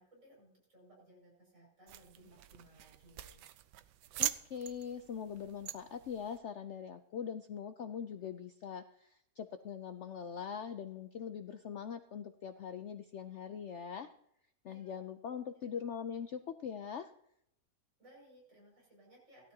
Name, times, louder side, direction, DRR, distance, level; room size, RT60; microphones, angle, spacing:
voice 1, 0.0-3.4 14.6-15.0 15.6-15.7 18.0-19.5, right 1 dB, 45° right, -4 dB, 6.5 m, -61 dB
sound 1, 1.9-6.4, right 12 dB, 80° right, 1.3 m, -42 dB
voice 2, 4.2-14.1 14.6-17.1, left 7 dB, 65° left, 9 dB, 0.7 m, -42 dB
17.0 x 12.5 x 2.8 m, 0.75 s
omnidirectional pair, 1.8 m